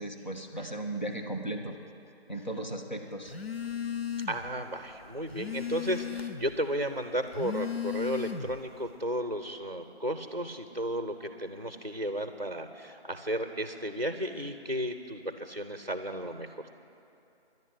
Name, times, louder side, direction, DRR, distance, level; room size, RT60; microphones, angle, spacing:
voice 1, 0.0-1.8 2.3-3.4, right 1 dB, 40° left, 3 dB, 1.2 m, -36 dB
Telephone, 3.3-4.5 4.9-6.6 7.2-8.7, left 8 dB, 65° left, 0.6 m, -36 dB
voice 2, 4.3-16.6, equal, 45° right, 8 dB, 0.6 m, -34 dB
11.0 x 9.9 x 9.2 m, 2.8 s
figure-of-eight pair, 180°, 33 cm